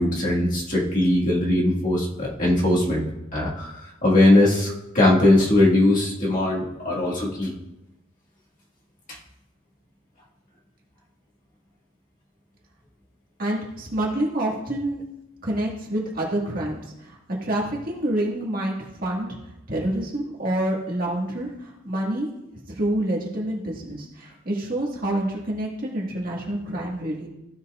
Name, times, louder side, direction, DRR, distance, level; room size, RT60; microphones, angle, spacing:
voice 1, 0.0-3.0 3.3-3.7 4.0-7.5, left 1 dB, 40° left, -4 dB, 1.8 m, -20 dB
voice 2, 13.4-15.0 15.4-19.3 19.7-22.3 22.8-27.3, right 1 dB, 45° right, -3 dB, 1.8 m, -27 dB
15.5 x 5.6 x 2.5 m, 0.90 s
head